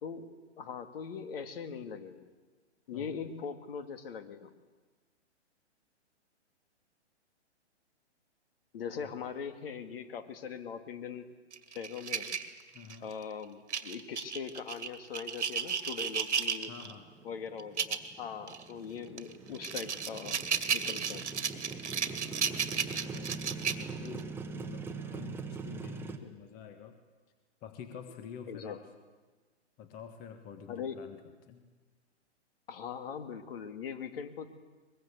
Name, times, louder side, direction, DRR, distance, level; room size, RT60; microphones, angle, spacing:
voice 1, 0.0-2.3 2.9-4.5 8.7-11.3 11.7-12.4 13.0-16.7 17.2-20.4 20.7-21.2 28.5-28.8 30.7-31.0 32.7-34.5, left 6 dB, 55° left, 8 dB, 2.5 m, -41 dB
sound 1, 11.5-13.1 13.7-16.9 17.6-18.1 18.5-18.6 19.2-24.2, right 7 dB, 75° right, 2.1 m, -34 dB
voice 2, 12.7-13.1 16.6-17.1 22.8-23.3 23.8-27.0 27.6-28.9 29.8-31.2 31.5-31.6, left 7 dB, 25° left, 7 dB, 1.6 m, -48 dB
Motorcycle, 16.8-26.2, right 4 dB, 5° right, 1.2 m, -43 dB
23.0 x 22.0 x 8.3 m, 1.3 s
hypercardioid pair, 135°, 35 cm